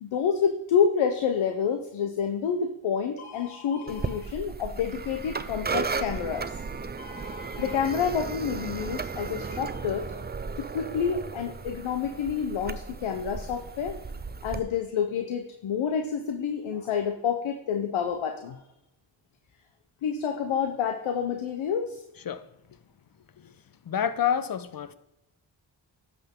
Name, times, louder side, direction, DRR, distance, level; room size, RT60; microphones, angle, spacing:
voice 1, 0.0-6.5 7.0-10.2 10.6-14.0 14.4-18.6 20.0-22.0, left 7 dB, 85° left, 6 dB, 0.7 m, -28 dB
sound 1, 3.9-14.6, right 4 dB, 20° right, 0.5 m, -35 dB
voice 2, 23.9-24.9, left 8 dB, 50° left, 13 dB, 0.7 m, -27 dB
11.0 x 5.9 x 3.6 m, 0.88 s
supercardioid pair, 40°, 47 cm